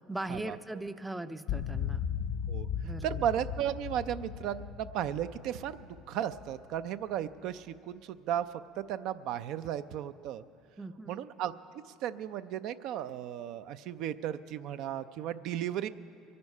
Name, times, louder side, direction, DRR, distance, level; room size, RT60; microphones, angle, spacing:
voice 1, 0.1-2.0 2.8-3.2 10.8-11.2, right 2 dB, 10° right, 12 dB, 0.4 m, -39 dB
sound 1, 1.5-6.8, left 7 dB, 75° left, 0.7 m, -37 dB
voice 2, 3.0-8.5 8.8-10.4 11.1-15.9, right 10 dB, 65° right, 12 dB, 0.4 m, -35 dB
22.5 x 9.5 x 5.4 m, 2.7 s
supercardioid pair, 110°, 0 cm